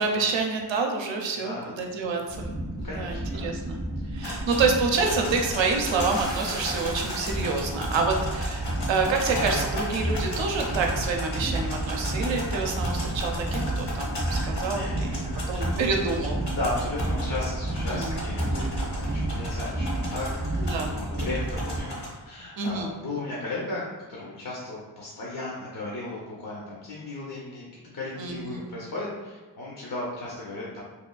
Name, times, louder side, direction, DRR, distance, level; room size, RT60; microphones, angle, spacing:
voice 1, 0.0-2.5 2.8-3.8 4.1-15.2 15.5-16.4 17.9-18.2 20.5-20.9 22.6-22.9 28.2-28.6, right 4 dB, 85° right, 2 dB, 0.5 m, -28 dB
voice 2, 1.3-1.7 2.8-3.5 4.0-4.1 14.7-15.7 16.0-16.1 16.5-30.8, left 2 dB, 50° left, -5 dB, 0.6 m, -35 dB
sound 1, 2.2-3.8 4.1-4.3 5.5-12.0, right 1 dB, 10° right, 0.4 m, -44 dB
sound 2, 2.3-21.8, right 1 dB, 85° left, 1.5 m, -31 dB
sound 3, 4.2-22.1, left 1 dB, 65° left, 1.0 m, -37 dB
3.0 x 2.4 x 2.2 m, 1.3 s
wide cardioid pair, 70°, 44 cm